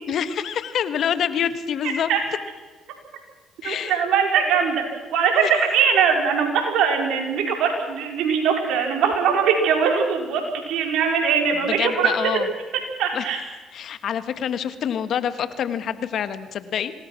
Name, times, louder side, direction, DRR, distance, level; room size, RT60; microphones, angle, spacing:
voice 1, 0.1-2.1 3.6-4.0 5.3-5.6 11.6-12.5 13.1-13.2 13.7-16.9, left 8 dB, 65° left, 11 dB, 1.6 m, -26 dB
voice 2, 3.6-4.8 5.1-10.4 10.7-12.4 13.0-13.4, right 6 dB, 75° right, 2 dB, 5.0 m, -21 dB
26.0 x 19.0 x 6.1 m, 1.3 s
supercardioid pair, 60°, 0 cm